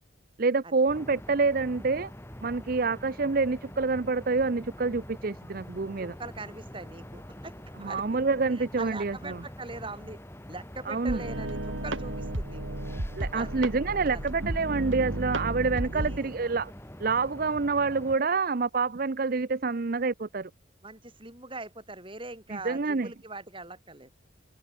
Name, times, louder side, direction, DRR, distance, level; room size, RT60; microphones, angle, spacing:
voice 1, 0.4-2.1 2.4-6.1 7.8-9.4 10.9-11.2 13.1-16.7 17.0-20.5 22.5-23.1, right 4 dB, 45° right, 0.6 m, -27 dB
sound 1, 0.9-18.2, equal, 10° left, 3.5 m, -45 dB
voice 2, 6.0-8.0 8.5-10.2 10.5-12.8 13.2-13.6 14.1-14.3 15.8-16.3 20.8-24.1, right 3 dB, 25° right, 4.4 m, -42 dB
sound 2, 11.1-16.2, right 1 dB, 80° right, 3.1 m, -33 dB
open air
head